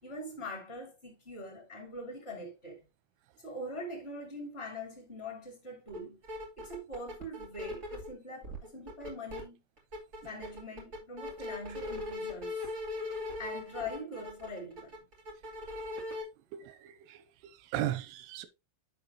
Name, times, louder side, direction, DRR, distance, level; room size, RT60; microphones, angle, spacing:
voice 1, 0.0-2.8 3.4-6.2 6.6-9.6 10.2-12.6 13.4-14.9, left 1 dB, 35° left, 0.9 m, -43 dB
sound 1, 5.9-6.0 6.2-8.1 8.4-9.4 9.8-16.2, left 2 dB, 45° right, 0.9 m, -39 dB
voice 2, 16.5-17.2 17.4-18.5, right 13 dB, 85° right, 3.2 m, -36 dB
11.0 x 5.2 x 3.0 m
omnidirectional pair, 5.8 m